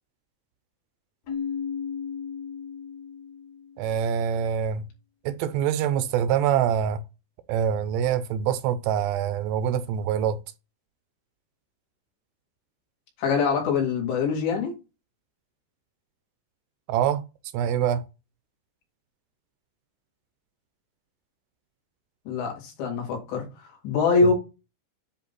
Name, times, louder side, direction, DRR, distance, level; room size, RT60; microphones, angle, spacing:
Keyboard (musical), 1.3-3.9, left 7 dB, 50° left, 2.4 m, -35 dB
voice 1, 3.8-4.8 5.3-7.0 7.5-10.4 16.9-17.2 17.5-18.0, right 9 dB, 85° right, 2.7 m, -25 dB
voice 2, 13.2-14.7 22.3-23.5 23.8-24.3, left 5 dB, 75° left, 4.4 m, -24 dB
10.0 x 3.6 x 4.1 m
omnidirectional pair, 5.1 m